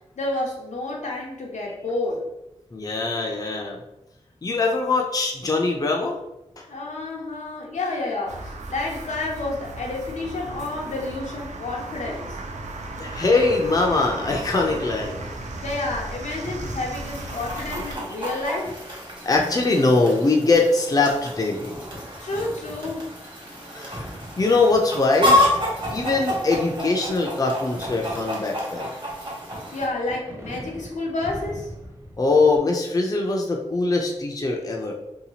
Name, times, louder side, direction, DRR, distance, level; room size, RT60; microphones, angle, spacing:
voice 1, 0.2-2.2 6.7-12.4 15.6-18.7 22.2-23.1 29.7-31.7, left 2 dB, 80° left, -1 dB, 0.6 m, -30 dB
voice 2, 2.7-3.8 4.4-6.2 6.6-6.7 13.0-15.2 17.7-17.9 19.2-21.7 23.7-25.4 25.9-28.9 32.2-34.9, left 3 dB, 30° left, 0 dB, 0.5 m, -22 dB
sound 1, 8.3-18.0, right 2 dB, 75° right, 0.4 m, -36 dB
Fireworks, 16.4-32.6, equal, 20° right, 0.5 m, -42 dB
Chicken rooster, 16.9-29.9, left 1 dB, 40° right, 1.1 m, -29 dB
2.8 x 2.3 x 2.8 m, 0.91 s
cardioid pair, 55°, 12 cm